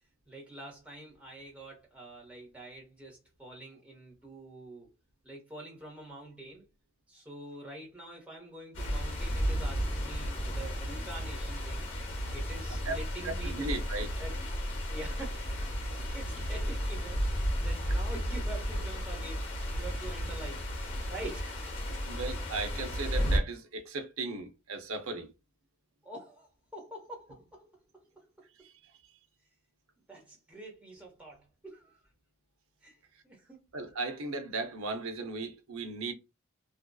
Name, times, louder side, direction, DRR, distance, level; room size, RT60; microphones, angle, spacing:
voice 1, 0.3-4.9 5.2-6.6 7.1-11.9 12.3-13.8 14.2-14.4 14.9-19.5 19.8-20.6 21.1-21.8 26.0-28.4 30.1-32.0 32.8-33.0 33.2-33.7, right 1 dB, 5° right, 0.9 m, -46 dB
sound 1, 8.7-23.4, equal, 60° left, 0.9 m, -33 dB
voice 2, 13.2-14.1 21.9-25.3 28.6-28.7 33.7-36.1, right 3 dB, 70° right, 0.5 m, -36 dB
2.6 x 2.2 x 2.2 m
head